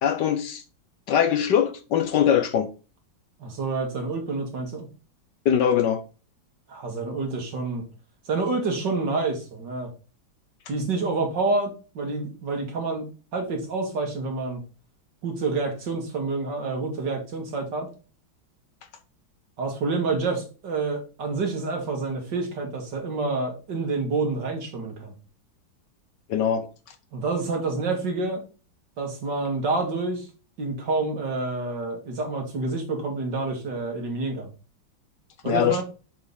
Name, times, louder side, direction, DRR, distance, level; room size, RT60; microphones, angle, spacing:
voice 1, 0.0-0.6 1.1-2.7 5.4-6.0 26.3-26.7 35.5-35.8, left 8 dB, 65° left, 1.3 m, -22 dB
voice 2, 3.4-4.9 6.7-7.8 8.3-9.9 10.7-13.1 13.3-14.6 15.2-17.9 19.6-25.1 27.1-28.4 29.0-30.3 30.6-34.5 35.4-35.8, right 3 dB, 60° right, 2.5 m, -28 dB
7.0 x 5.2 x 4.0 m
omnidirectional pair, 2.2 m